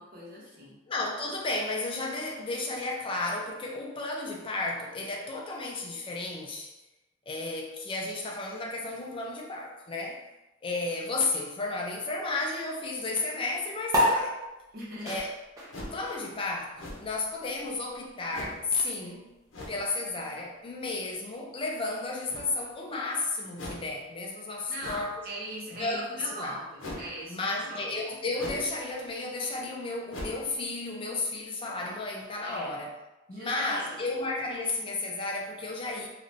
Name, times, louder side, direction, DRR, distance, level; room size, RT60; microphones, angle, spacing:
voice 1, 0.0-0.8 14.7-15.2 24.7-27.9 32.4-32.7 33.3-34.0, right 1 dB, 50° right, -5 dB, 0.9 m, -40 dB
voice 2, 0.9-6.7 7.3-10.2 10.6-14.4 15.0-15.3 15.9-16.7 17.0-19.3 19.7-25.1 25.7-26.6 27.3-32.9 33.3-36.1, left 3 dB, 25° left, 0 dB, 0.3 m, -33 dB
sound 1, 13.9-20.7, equal, 15° right, 0.7 m, -33 dB
sound 2, 15.7-16.1 16.8-17.2 18.3-18.7 19.5-19.9 22.2-22.7 23.5-23.9 24.8-25.2 26.8-27.1 28.4-28.8 29.1-29.2 30.1-30.5, left 1 dB, 80° left, 0.7 m, -40 dB
3.3 x 2.4 x 2.6 m, 1.0 s
head